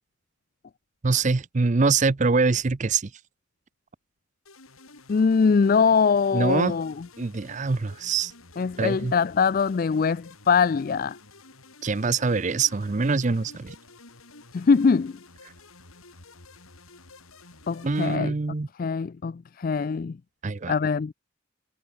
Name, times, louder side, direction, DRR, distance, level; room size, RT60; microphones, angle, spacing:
voice 1, 1.0-3.1 6.3-6.8 7.2-8.3 8.8-9.1 11.8-13.8 17.8-18.7 20.4-20.7, right 4 dB, 35° right, 0.5 m, -24 dB
sound 1, 4.5-18.2, left 3 dB, 90° left, 6.9 m, -50 dB
voice 2, 5.1-7.0 8.6-11.2 14.5-15.2 17.7-18.3 18.8-20.2 20.7-21.1, left 5 dB, 40° left, 0.3 m, -22 dB
head